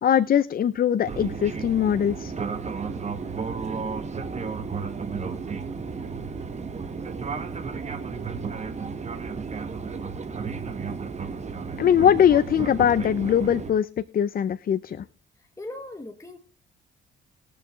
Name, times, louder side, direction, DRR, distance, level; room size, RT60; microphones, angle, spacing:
voice 1, 0.0-2.3 11.8-15.1, left 9 dB, 45° left, 15 dB, 0.5 m, -21 dB
Fixed-wing aircraft airplane, 1.1-13.7, right 5 dB, 35° right, 1.5 m, -33 dB
voice 2, 15.4-16.4, left 2 dB, 15° left, 4 dB, 1.5 m, -39 dB
20.5 x 6.9 x 3.1 m, 0.33 s
cardioid pair, 90°, 20 cm